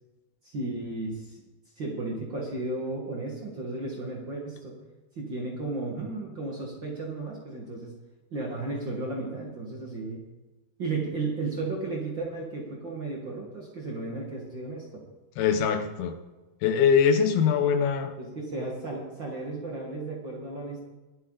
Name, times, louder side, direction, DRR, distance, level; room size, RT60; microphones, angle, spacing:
voice 1, 0.4-1.4 1.8-4.7 5.2-7.9 8.3-10.2 10.8-15.0 18.2-20.8, right 3 dB, 40° right, -2 dB, 1.8 m, -34 dB
voice 2, 15.4-16.2 16.6-18.1, left 7 dB, 80° left, 8 dB, 3.0 m, -22 dB
22.0 x 8.3 x 4.0 m, 1.1 s
omnidirectional pair, 4.4 m